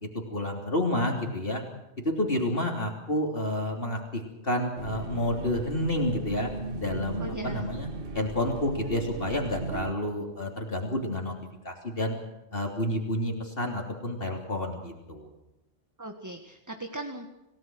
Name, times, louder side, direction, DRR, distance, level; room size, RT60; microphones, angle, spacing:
voice 1, 0.0-1.6 2.0-6.5 6.8-11.3 11.6-12.2 12.5-15.3, left 1 dB, 50° left, 2 dB, 3.4 m, -30 dB
sound 1, 4.8-9.9, right 4 dB, 50° right, 1.4 m, -37 dB
voice 2, 7.1-7.6 16.0-17.3, right 1 dB, 15° right, 5 dB, 1.7 m, -38 dB
28.0 x 18.0 x 6.3 m, 0.92 s
omnidirectional pair, 1.3 m